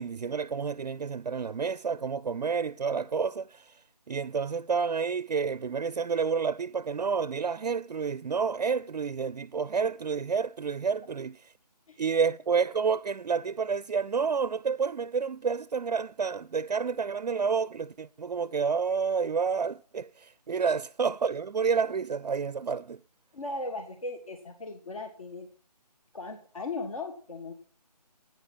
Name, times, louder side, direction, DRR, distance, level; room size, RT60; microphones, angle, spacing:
voice 1, 0.0-3.8 4.1-11.4 12.0-23.0, right 5 dB, 80° right, 0.5 m, -29 dB
voice 2, 11.9-12.2 23.3-25.5 26.1-27.5, left 3 dB, 55° left, 1.6 m, -38 dB
11.0 x 9.0 x 5.7 m
figure-of-eight pair, 165°, 21 cm